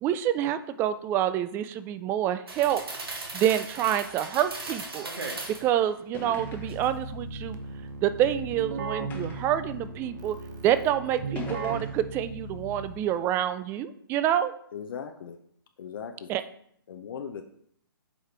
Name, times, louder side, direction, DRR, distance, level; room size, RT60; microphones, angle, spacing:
voice 1, 0.0-2.8 3.3-5.1 5.6-7.6 8.0-10.4 10.6-14.5 16.3-16.4, right 11 dB, 20° right, 13 dB, 0.3 m, -27 dB
sound 1, 2.5-5.7 6.2-7.1 7.5-7.7, right 3 dB, 80° right, 1.6 m, -38 dB
sound 2, 6.1-6.9 7.8-7.9 9.1-9.6 10.5-10.6 11.4-12.1, left 5 dB, 15° left, 1.0 m, -42 dB
Keyboard (musical), 6.4-13.2, right 3 dB, 50° right, 0.9 m, -37 dB
voice 2, 14.7-15.4 15.8-16.3 16.9-17.4, left 7 dB, 65° left, 6 dB, 0.6 m, -38 dB
7.9 x 4.9 x 3.3 m, 0.66 s
hypercardioid pair, 135°, 13 cm